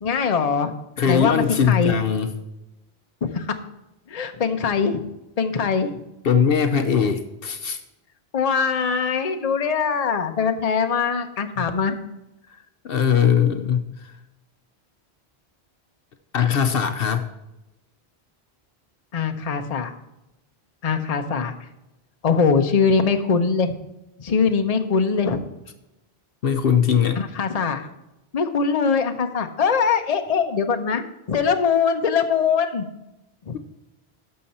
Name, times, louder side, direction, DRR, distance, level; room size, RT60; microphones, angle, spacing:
voice 1, 0.0-0.7 1.1-1.9 3.2-3.5 4.1-5.0 5.4-6.0 8.3-11.9 19.1-19.9 20.8-21.5 22.2-23.7 24.2-25.4 27.2-27.9 28.3-32.8 33.5-33.6, left 5 dB, 40° left, 6 dB, 0.8 m, -22 dB
voice 2, 1.0-2.3 6.2-7.8 11.6-11.7 12.8-14.1 16.3-17.3 26.4-27.2, left 7 dB, 65° left, 8 dB, 0.9 m, -20 dB
11.5 x 6.6 x 4.3 m, 0.94 s
omnidirectional pair, 1.1 m